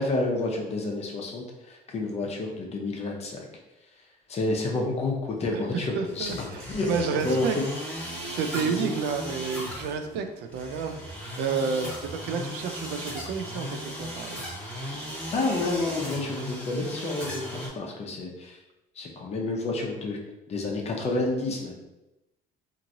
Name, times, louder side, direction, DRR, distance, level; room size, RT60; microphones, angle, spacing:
voice 1, 0.0-3.4 4.3-6.9 7.2-7.5 8.6-8.7 14.9-15.0 15.3-18.6 19.0-20.2 20.5-21.8, left 2 dB, 40° left, 0 dB, 0.7 m, -29 dB
voice 2, 5.9-7.6 8.3-14.4, right 6 dB, 85° right, 6 dB, 0.4 m, -30 dB
sound 1, 6.0-17.7, equal, 5° left, 1.1 m, -37 dB
2.9 x 2.6 x 2.6 m, 0.97 s
cardioid pair, 110°, 17 cm